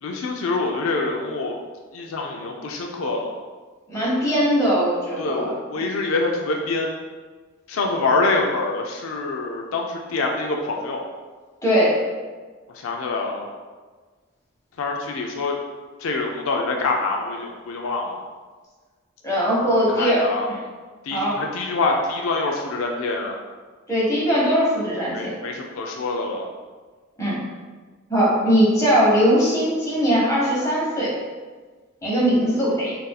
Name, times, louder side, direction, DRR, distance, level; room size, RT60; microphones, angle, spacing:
voice 1, 0.0-1.6 1.9-3.4 5.2-7.0 7.7-11.0 12.7-13.5 14.8-15.5 16.0-18.3 19.9-20.5 21.0-23.4 25.1-26.5, left 3 dB, 85° left, 1 dB, 0.4 m, -25 dB
voice 2, 3.9-5.5 11.6-12.0 19.2-20.2 20.5-20.6 21.1-21.3 23.9-25.3 27.2-27.4 28.1-31.1 32.0-32.9, equal, 15° left, -7 dB, 1.0 m, -20 dB
4.0 x 2.6 x 2.3 m, 1.4 s
head